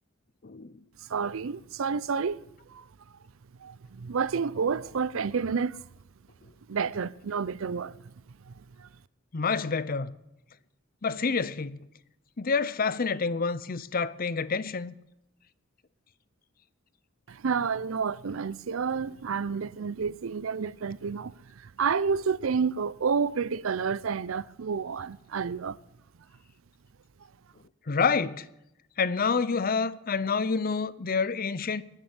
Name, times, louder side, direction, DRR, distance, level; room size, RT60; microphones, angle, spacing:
voice 1, 1.1-2.4 2.7-2.8 3.6-5.8 6.7-8.0 8.5-8.6 8.8-8.9 17.3-25.8, right 5 dB, 70° right, 0.5 m, -30 dB
voice 2, 9.3-10.1 11.0-11.8 12.4-14.9 27.9-28.5 29.0-31.8, left 5 dB, 45° left, 0.6 m, -28 dB
20.0 x 7.5 x 9.6 m
head